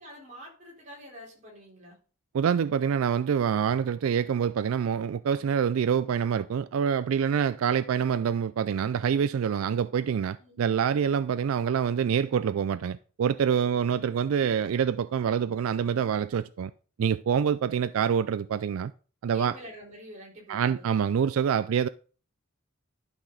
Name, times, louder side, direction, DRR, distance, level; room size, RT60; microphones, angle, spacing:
voice 1, 0.0-2.0 10.4-10.6 19.3-20.8, equal, 35° right, 3.9 m, -46 dB
voice 2, 2.3-16.7 17.0-18.9 19.2-19.5 20.5-21.9, right 7 dB, 80° right, 0.3 m, -26 dB
11.5 x 6.0 x 3.9 m
head